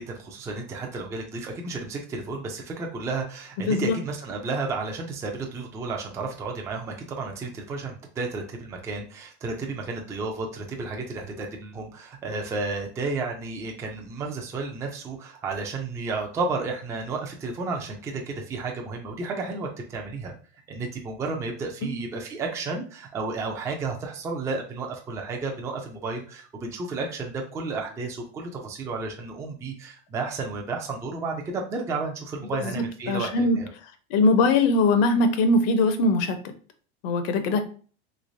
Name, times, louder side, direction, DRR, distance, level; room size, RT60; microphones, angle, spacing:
voice 1, 0.0-20.3 20.7-33.7, right 3 dB, 10° right, 1 dB, 0.3 m, -32 dB
voice 2, 3.6-4.0 21.8-22.1 32.6-32.7 33.1-33.6 34.1-36.4 37.0-37.6, left 2 dB, 60° left, 9 dB, 0.7 m, -21 dB
3.2 x 3.1 x 2.6 m, 0.41 s
supercardioid pair, 135°, 33 cm